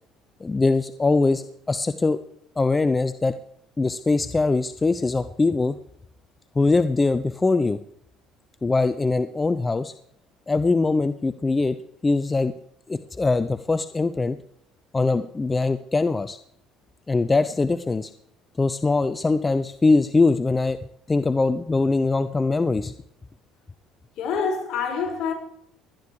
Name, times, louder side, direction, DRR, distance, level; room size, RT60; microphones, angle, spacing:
voice 1, 0.4-2.2 2.6-3.3 3.8-5.8 6.5-7.8 8.6-9.9 10.5-11.8 12.0-12.5 12.9-14.4 14.9-16.4 17.1-18.1 18.6-20.8 21.1-22.9, left 3 dB, 20° left, 0.7 m, -22 dB
voice 2, 24.2-25.3, left 5 dB, 60° left, 5.5 m, -26 dB
19.5 x 11.5 x 4.9 m
supercardioid pair, 85°, 0 cm